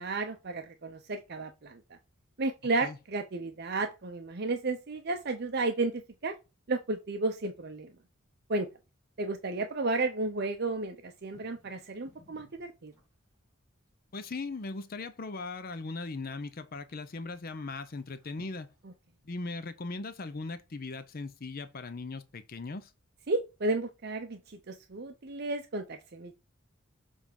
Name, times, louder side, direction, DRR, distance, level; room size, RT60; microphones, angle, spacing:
voice 1, 0.0-1.8 2.4-6.4 6.7-7.9 8.5-8.7 9.2-12.9 23.3-26.3, right 2 dB, 50° right, 0.6 m, -33 dB
sound 1, 11.1-13.3 13.9-14.0 14.2-16.3 16.9-17.0 17.4-17.5 17.8-19.0, left 2 dB, 15° right, 3.8 m, -61 dB
voice 2, 14.1-18.7 19.2-22.9, left 3 dB, 45° left, 0.6 m, -39 dB
7.3 x 3.4 x 5.2 m
head